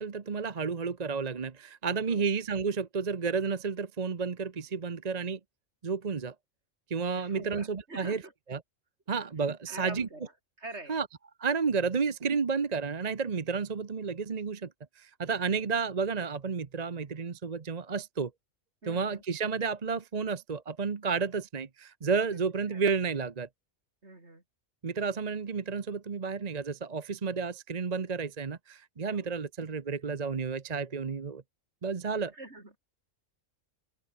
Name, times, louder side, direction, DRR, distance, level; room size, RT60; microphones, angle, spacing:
voice 1, 0.0-5.4 5.8-6.3 6.9-8.2 8.5-8.6 9.1-10.1 10.9-11.1 11.4-14.7 15.0-18.3 18.9-23.5 24.8-31.4 31.8-32.3, right 5 dB, 35° right, 0.9 m, -31 dB
voice 2, 7.2-8.3 9.7-10.3 10.6-11.0 15.5-15.7 18.8-19.2 22.3-22.4 22.7-22.9 24.0-24.4 29.0-29.3 32.3-32.7, right 2 dB, 55° right, 4.9 m, -45 dB
open air
omnidirectional pair, 1.3 m